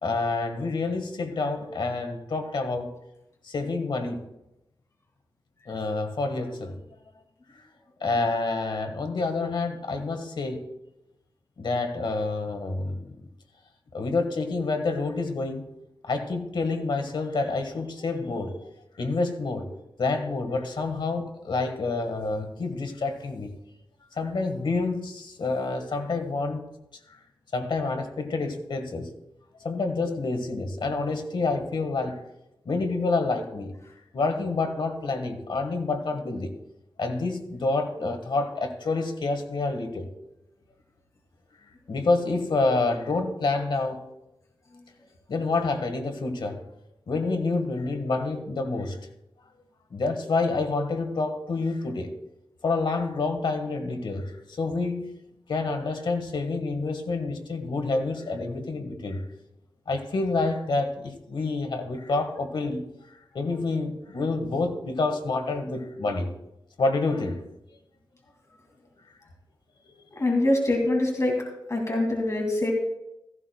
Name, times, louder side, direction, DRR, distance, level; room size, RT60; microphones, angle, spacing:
voice 1, 0.0-2.9 3.4-4.2 5.7-6.8 8.0-10.7 11.6-13.1 13.9-15.7 16.0-18.6 19.0-19.7 20.0-23.5 24.2-26.6 27.5-29.1 29.6-32.2 32.6-33.7 34.1-36.5 37.0-40.1 41.9-44.0 45.3-46.6 47.1-49.0 49.9-52.2 52.6-55.1 55.5-59.2 59.9-62.8 63.3-66.3 66.8-67.4 70.0-70.1, left 3 dB, 65° left, 1.7 m, -28 dB
voice 2, 70.2-71.4 71.7-72.7, left 1 dB, 35° left, 2.5 m, -24 dB
16.0 x 15.0 x 2.3 m
wide cardioid pair, 85°, 9 cm